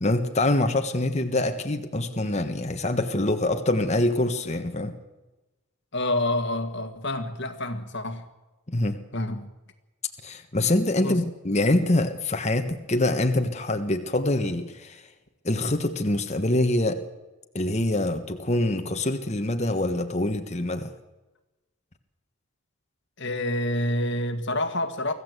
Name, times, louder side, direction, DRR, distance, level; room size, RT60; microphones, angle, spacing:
voice 1, 0.0-4.9 8.7-9.0 10.2-15.0 15.4-17.0 17.5-20.9, left 1 dB, 30° left, 6 dB, 1.4 m, -25 dB
voice 2, 5.9-8.2 9.1-9.5 11.0-11.2 23.2-25.1, left 1 dB, 50° left, 7 dB, 1.8 m, -28 dB
25.0 x 16.0 x 8.2 m, 1.1 s
head